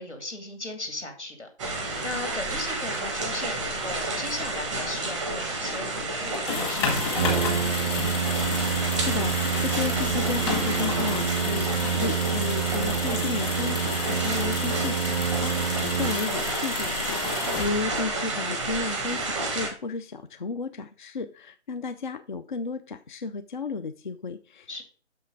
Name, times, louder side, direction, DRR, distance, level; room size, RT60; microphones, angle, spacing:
voice 1, 0.0-1.5 2.0-7.6 17.4-18.0 24.7-24.8, left 2 dB, 85° left, 5 dB, 2.6 m, -37 dB
sound 1, 1.6-19.7, right 2 dB, ahead, 0.7 m, -30 dB
sound 2, 6.3-18.2, left 5 dB, 25° left, 1.6 m, -32 dB
Brass instrument, 7.2-16.6, right 8 dB, 45° right, 0.5 m, -28 dB
voice 2, 8.7-24.8, left 4 dB, 45° left, 10 dB, 0.5 m, -33 dB
6.7 x 5.4 x 5.2 m, 0.40 s
figure-of-eight pair, 145°, 34 cm